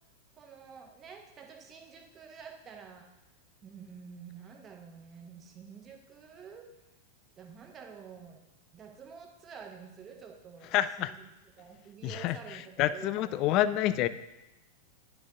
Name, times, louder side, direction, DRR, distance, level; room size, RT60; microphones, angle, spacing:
voice 1, 0.3-3.1 3.6-6.7 7.4-8.4 8.7-11.2 11.6-12.6 12.9-13.4, right 6 dB, 25° right, 3 dB, 1.0 m, -49 dB
voice 2, 10.7-11.1 12.0-12.4 12.8-14.1, left 13 dB, 40° left, 13 dB, 0.4 m, -27 dB
9.9 x 4.8 x 3.6 m, 0.98 s
figure-of-eight pair, 90°, 0 cm